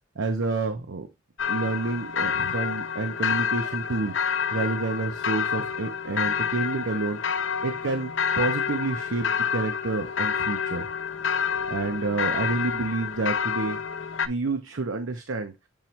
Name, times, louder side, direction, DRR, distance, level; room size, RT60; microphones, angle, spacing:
voice 1, 0.2-1.1 1.5-7.2 7.6-10.9 11.7-13.8 14.3-15.5, right 3 dB, 85° right, 7 dB, 0.7 m, -29 dB
sound 1, 1.4-14.3, left 7 dB, 70° left, 0.7 m, -28 dB
7.4 x 3.1 x 4.3 m, 0.22 s
head